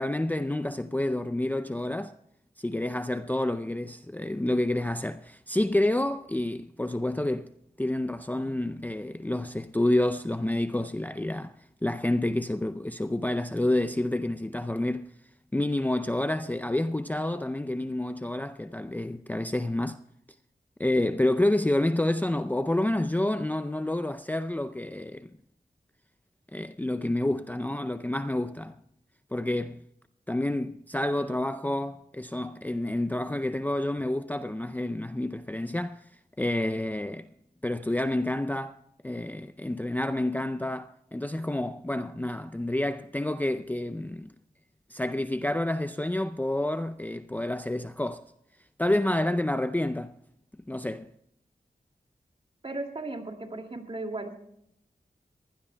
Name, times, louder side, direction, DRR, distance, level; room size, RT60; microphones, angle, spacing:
voice 1, 0.0-2.1 2.6-7.5 7.8-11.5 11.8-15.1 15.5-20.0 20.8-25.3 26.5-28.7 29.3-29.8 30.3-36.0 36.4-37.3 37.6-44.3 44.9-48.2 48.8-50.2 50.7-51.1, left 1 dB, 10° left, 0.5 m, -29 dB
voice 2, 52.6-54.3, right 2 dB, 35° right, 2.4 m, -36 dB
23.0 x 16.0 x 2.3 m
wide cardioid pair, 70°, 16 cm